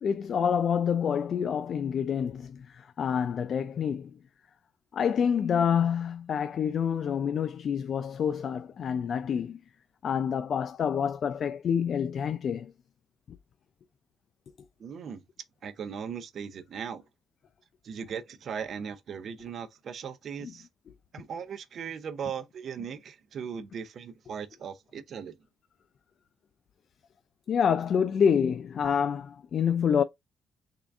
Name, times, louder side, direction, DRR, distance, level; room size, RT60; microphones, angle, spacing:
voice 1, 0.0-4.1 4.9-9.6 10.0-12.7 27.5-30.0, left 7 dB, 60° left, 0.3 m, -27 dB
voice 2, 14.8-15.2 15.6-17.0 17.8-20.7 21.1-25.4, right 7 dB, 60° right, 0.6 m, -38 dB
3.7 x 2.3 x 3.4 m
cardioid pair, 85°, 0 cm